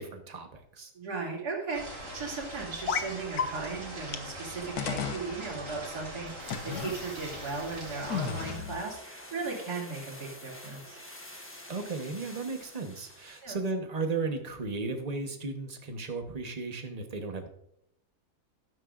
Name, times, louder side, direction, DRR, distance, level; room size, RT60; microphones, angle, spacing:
voice 1, 0.0-0.9 11.7-17.5, right 3 dB, 30° right, 5 dB, 1.1 m, -35 dB
voice 2, 0.9-11.0 13.4-13.6, right 4 dB, 80° right, -4 dB, 3.2 m, -37 dB
sound 1, 1.7-8.6, right 1 dB, 55° right, 2.8 m, -42 dB
sound 2, 2.9-3.1 3.4-3.5 4.1-4.2 4.8-5.3 6.5-7.0 8.1-8.8, left 6 dB, 75° left, 1.4 m, -32 dB
sound 3, 6.3-13.6 13.8-13.9, left 1 dB, 10° left, 1.2 m, -48 dB
13.0 x 11.0 x 2.5 m, 0.74 s
omnidirectional pair, 1.7 m